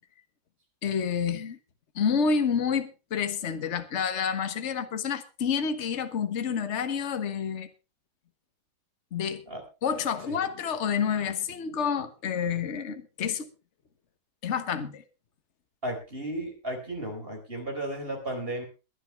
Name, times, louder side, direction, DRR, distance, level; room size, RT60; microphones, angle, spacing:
voice 1, 0.8-1.6 1.9-7.7 9.1-9.4 9.8-13.5 14.4-15.0, left 6 dB, 40° left, 1.4 m, -29 dB
voice 2, 15.8-18.6, right 1 dB, 25° right, 4.3 m, -34 dB
22.0 x 11.0 x 3.3 m
omnidirectional pair, 2.2 m